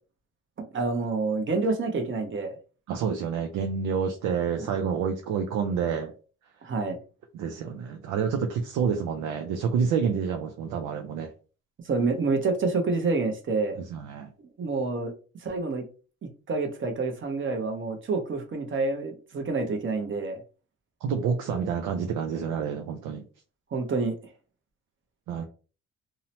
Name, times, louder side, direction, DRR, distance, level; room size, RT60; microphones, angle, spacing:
voice 1, 0.6-2.5 4.6-4.7 6.6-7.0 11.8-13.8 14.4-15.1 15.4-15.8 16.2-20.4 23.7-24.1, right 3 dB, 40° right, 4 dB, 0.7 m, -28 dB
voice 2, 2.9-6.1 7.3-11.3 13.8-14.3 21.0-23.2 25.3-25.4, right 6 dB, 85° right, 4 dB, 0.5 m, -28 dB
2.8 x 2.0 x 2.8 m, 0.36 s
cardioid pair, 90°, 30 cm